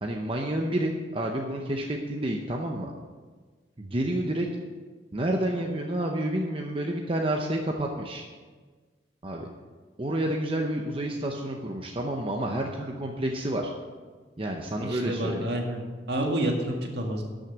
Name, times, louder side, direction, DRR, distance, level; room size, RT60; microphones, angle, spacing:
voice 1, 0.0-2.9 3.8-4.5 5.1-8.2 9.2-9.5 10.0-13.7 14.4-15.5, right 1 dB, 30° right, 1 dB, 0.8 m, -29 dB
voice 2, 14.8-15.8 16.1-17.2, right 1 dB, 60° right, 1 dB, 1.8 m, -28 dB
13.0 x 6.4 x 6.0 m, 1.4 s
head